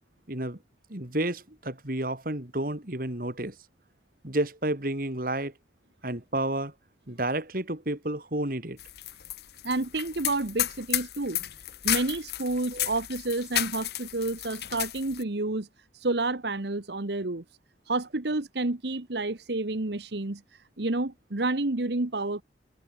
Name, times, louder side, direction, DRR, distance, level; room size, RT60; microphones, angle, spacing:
voice 1, 0.3-0.6 0.9-3.5 4.2-5.5 6.0-6.7 7.1-8.8 12.7-12.9, right 1 dB, 50° right, 2.8 m, -31 dB
sound 1, 8.8-15.2, left 13 dB, 60° left, 1.1 m, -33 dB
voice 2, 9.6-11.4 11.8-15.7 15.9-17.4 17.9-22.4, right 2 dB, 70° right, 1.3 m, -30 dB
head